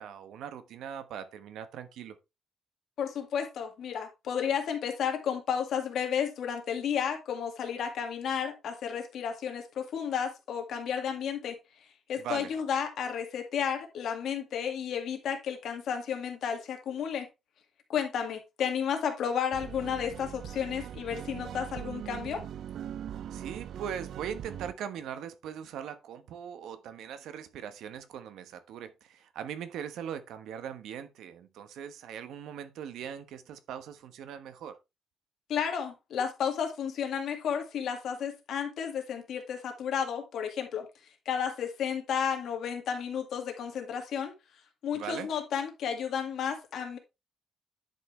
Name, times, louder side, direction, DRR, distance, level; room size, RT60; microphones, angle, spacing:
voice 1, 0.0-2.2 12.2-12.6 23.3-34.8 44.9-45.3, right 8 dB, 80° right, 1.1 m, -40 dB
voice 2, 3.0-11.6 12.1-17.3 17.9-22.4 35.5-40.9 41.3-44.3 44.8-47.0, left 7 dB, 60° left, 2.1 m, -32 dB
sound 1, 19.5-24.7, right 10 dB, 60° right, 0.5 m, -41 dB
10.5 x 5.6 x 3.3 m
cardioid pair, 170°, 0 cm